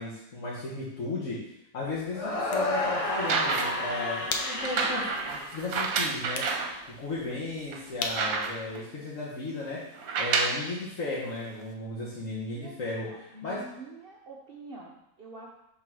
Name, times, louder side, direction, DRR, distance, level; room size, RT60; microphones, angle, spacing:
voice 1, 0.0-6.4 7.0-13.6, left 2 dB, 60° left, -7 dB, 1.6 m, -35 dB
sound 1, 2.1-6.3, left 1 dB, 25° left, 1.0 m, -32 dB
sound 2, 2.3-9.7, left 4 dB, 90° left, 1.3 m, -41 dB
sound 3, 3.1-3.9 4.6-6.7 7.3-7.4 7.7-8.8 10.0-10.7 11.6-11.7, right 5 dB, 75° right, 1.2 m, -29 dB
voice 2, 12.5-15.5, right 2 dB, 45° right, -2 dB, 0.9 m, -46 dB
6.2 x 3.8 x 6.1 m, 0.83 s
omnidirectional pair, 1.5 m